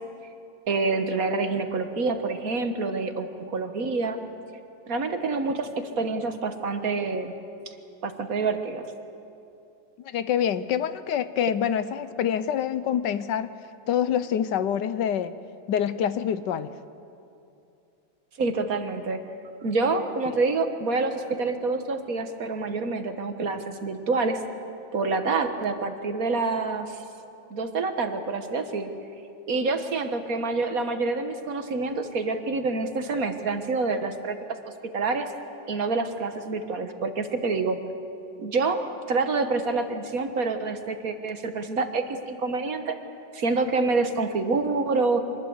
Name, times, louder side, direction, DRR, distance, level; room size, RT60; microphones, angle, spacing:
voice 1, 0.7-4.2 4.9-7.3 7.7-7.8 8.0-8.9 18.4-19.2 19.6-24.4 24.9-27.0 27.5-28.9 29.5-34.4 34.9-35.3 35.7-37.8 38.4-38.8 39.1-43.0 43.3-45.2, right 3 dB, 50° right, 7 dB, 1.7 m, -27 dB
voice 2, 10.0-13.5 13.9-15.3 15.7-16.7 20.3-20.4, left 9 dB, 75° left, 13 dB, 1.3 m, -26 dB
25.5 x 20.5 x 8.0 m, 2.6 s
omnidirectional pair, 2.0 m